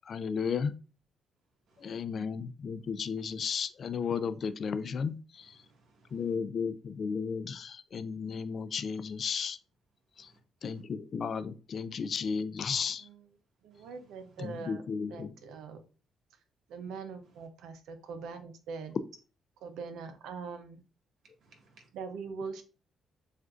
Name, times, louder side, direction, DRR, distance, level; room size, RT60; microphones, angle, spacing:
voice 1, 0.1-0.7 1.8-5.1 6.1-9.6 10.6-13.0 14.4-15.3, left 6 dB, 50° left, 13 dB, 0.3 m, -34 dB
voice 2, 1.7-2.0 5.3-6.3 10.1-10.4 10.7-10.8 13.7-14.7 17.2-17.5 21.4-21.9, right 3 dB, 65° right, 1 dB, 1.7 m, -64 dB
voice 3, 13.6-14.8 15.1-15.8 16.7-19.0 19.6-20.8 21.9-22.6, right 5 dB, 85° right, 8 dB, 0.6 m, -42 dB
7.3 x 2.5 x 2.4 m, 0.35 s
cardioid pair, 90°, 0 cm